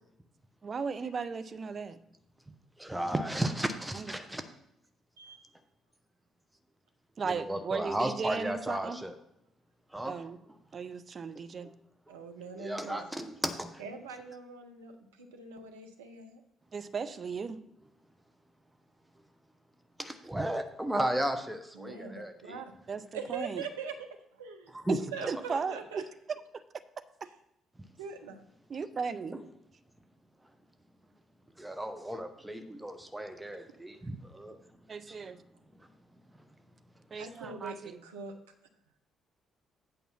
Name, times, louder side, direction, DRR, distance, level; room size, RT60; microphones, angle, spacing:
voice 1, 0.6-2.0 3.9-4.1 7.2-9.0 10.1-10.4 10.7-11.7 16.7-17.6 22.9-23.6 24.9-25.0 25.3-26.6 27.2-27.3 28.7-29.4 34.9-35.4 37.1-38.0, right 5 dB, 45° right, 11 dB, 0.7 m, -36 dB
voice 2, 2.8-4.4 7.2-9.1 9.9-10.1 11.6-11.7 12.6-13.8 20.0-22.6 24.7-25.0 31.6-34.6 35.1-35.2, right 1 dB, 10° right, 8 dB, 1.0 m, -34 dB
voice 3, 5.2-5.5 12.1-13.2 13.8-16.4 21.7-22.7 23.1-24.0 24.4-24.7 25.1-26.0 28.0-28.5 37.2-38.3, right 5 dB, 80° right, 4 dB, 0.9 m, -42 dB
8.6 x 5.2 x 5.7 m, 0.80 s
figure-of-eight pair, 45°, 0 cm